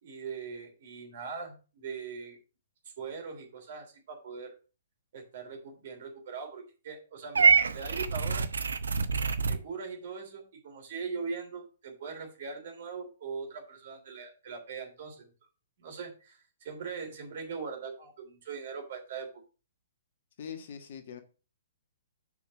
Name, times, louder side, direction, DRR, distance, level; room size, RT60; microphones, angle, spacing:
voice 1, 0.0-2.4 3.0-4.5 5.1-8.5 9.5-15.3 15.8-19.4, right 5 dB, 50° right, 3 dB, 3.1 m, -41 dB
Purr / Meow, 7.3-9.6, right 5 dB, 70° right, 0.7 m, -25 dB
voice 2, 20.4-21.2, left 7 dB, 50° left, 7 dB, 1.4 m, -42 dB
6.9 x 5.0 x 6.1 m, 0.34 s
figure-of-eight pair, 120°, 0 cm